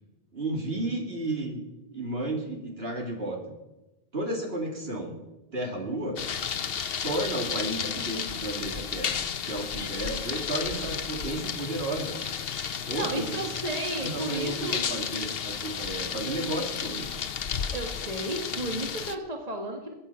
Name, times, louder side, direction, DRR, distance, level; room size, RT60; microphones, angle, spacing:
voice 1, 0.3-1.6 1.9-3.4 4.1-5.1 5.5-6.2 7.0-9.1 9.4-12.2 12.9-13.4 14.0-17.3, right 1 dB, 70° right, 1 dB, 3.0 m, -32 dB
sound 1, 6.2-19.2, left 7 dB, 65° left, 1.0 m, -33 dB
voice 2, 12.9-14.8 17.7-19.9, right 2 dB, 40° right, 2 dB, 1.9 m, -33 dB
22.0 x 9.1 x 5.7 m, 1.0 s
omnidirectional pair, 1.1 m